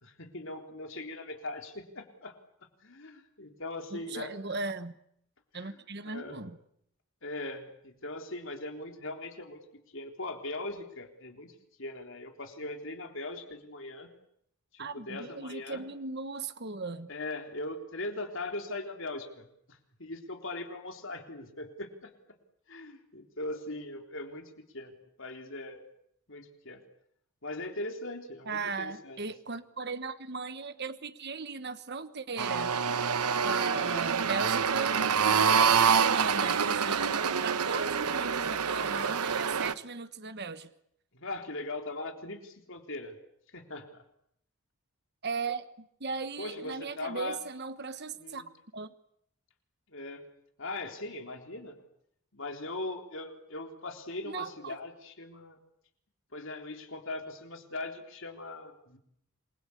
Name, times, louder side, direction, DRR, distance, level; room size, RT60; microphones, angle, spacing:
voice 1, 0.0-2.4 2.8-4.3 5.5-5.8 6.0-6.4 7.2-9.6 9.9-14.1 14.7-15.9 17.1-22.1 22.7-25.8 26.3-26.8 27.4-29.2 33.6-34.1 34.5-35.1 41.1-43.1 43.5-44.0 46.4-47.4 48.1-48.4 49.9-50.2 50.6-51.8 52.3-55.6 56.3-59.0, left 2 dB, 60° left, 4 dB, 3.7 m, -40 dB
voice 2, 3.9-4.9 5.5-6.6 14.8-17.1 28.5-32.7 33.4-35.0 35.9-40.7 45.2-48.4 48.7-48.9 54.2-54.8, right 4 dB, 50° right, 11 dB, 1.2 m, -37 dB
sound 1, 32.4-39.7, right 6 dB, 90° right, 1.1 m, -26 dB
28.0 x 22.5 x 8.5 m, 0.73 s
head